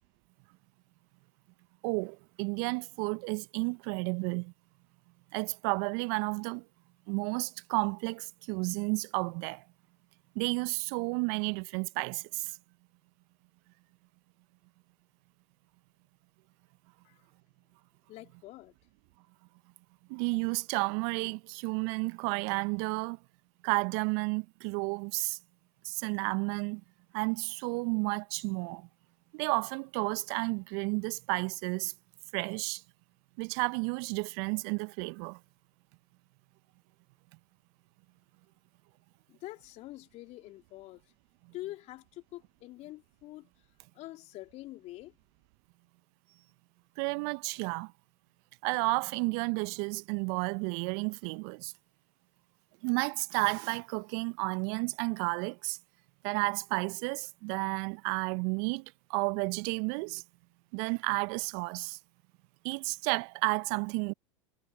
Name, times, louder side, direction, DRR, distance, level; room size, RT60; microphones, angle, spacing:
voice 1, 1.8-4.5 5.3-6.6 7.1-9.6 10.3-12.6 20.1-23.2 23.6-25.4 25.8-26.8 27.1-28.9 29.3-31.9 32.3-32.8 33.4-35.4 47.0-47.9 48.6-51.7 52.8-55.8 56.2-60.2 60.7-62.0 62.6-64.1, right 34 dB, 50° right, 1.1 m, -32 dB
voice 2, 18.1-18.7 39.3-41.0 41.5-43.5 43.9-45.1, left 17 dB, 40° left, 3.4 m, -45 dB
figure-of-eight pair, 90°, 17 cm